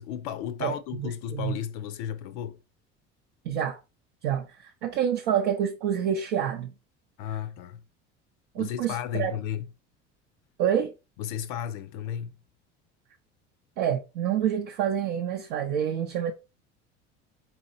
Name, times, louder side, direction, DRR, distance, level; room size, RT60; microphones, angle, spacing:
voice 1, 0.0-2.6 7.2-7.8 8.6-9.6 11.2-12.3, left 10 dB, 60° left, 0.5 m, -33 dB
voice 2, 0.6-1.6 3.5-3.8 4.2-6.7 8.5-9.3 10.6-10.9 13.8-16.3, right 9 dB, 70° right, 0.6 m, -28 dB
4.2 x 2.9 x 2.6 m
hypercardioid pair, 70°, 35 cm